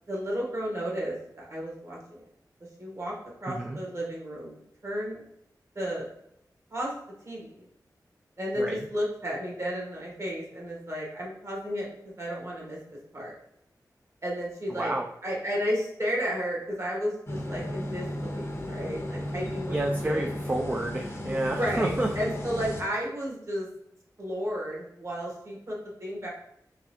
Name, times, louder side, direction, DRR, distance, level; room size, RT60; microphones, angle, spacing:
voice 1, 0.1-2.2 2.8-3.1 3.4-4.6 4.8-5.2 5.7-6.1 6.7-6.9 7.2-7.6 8.4-12.8 13.1-13.3 14.2-14.9 15.2-19.8 20.0-20.3 21.4-23.7 24.2-26.3, equal, 45° right, -3 dB, 1.4 m, -33 dB
voice 2, 3.5-3.8 8.6-8.8 14.8-15.1 19.7-22.1, right 1 dB, 25° right, 1 dB, 0.4 m, -29 dB
sound 1, 17.3-22.8, equal, 35° left, 0.7 m, -34 dB
3.9 x 3.2 x 3.0 m, 0.75 s
wide cardioid pair, 90°, 7 cm